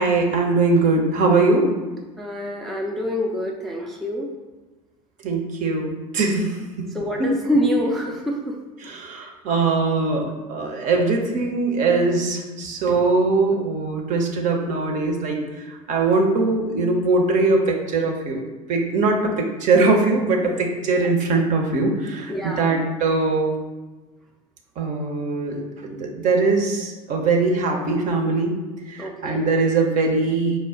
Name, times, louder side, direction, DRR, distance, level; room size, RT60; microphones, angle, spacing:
voice 1, 0.0-1.7 5.2-6.9 7.2-7.3 8.8-15.4 15.7-23.6 24.8-28.5 28.9-30.6, right 3 dB, 45° right, 2 dB, 0.7 m, -21 dB
voice 2, 2.2-4.3 6.9-8.6 8.8-8.9 22.3-22.9 29.0-29.4, equal, ahead, -1 dB, 0.4 m, -26 dB
4.2 x 2.1 x 3.7 m, 1.2 s
figure-of-eight pair, 70°, 18 cm